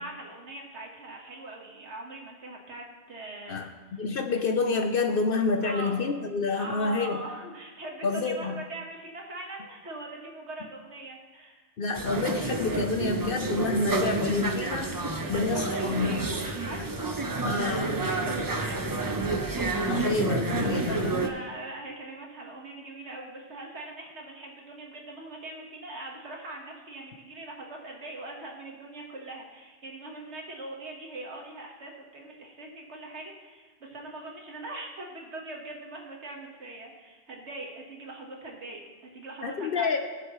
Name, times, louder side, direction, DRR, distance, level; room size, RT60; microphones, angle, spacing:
voice 1, 0.0-3.6 3.9-4.0 4.3-4.4 5.6-6.0 6.6-11.7 15.2-16.8 17.7-19.3 21.2-40.0, right 2 dB, 65° right, 0 dB, 1.8 m, -41 dB
voice 2, 4.0-7.2 8.0-8.5 11.8-15.0 15.3-16.2 17.4-17.9 19.9-21.2 39.4-40.0, left 4 dB, 55° left, 5 dB, 0.8 m, -28 dB
sound 1, 11.9-21.3, right 3 dB, 25° right, 0.5 m, -29 dB
18.5 x 6.8 x 3.1 m, 1.3 s
omnidirectional pair, 1.3 m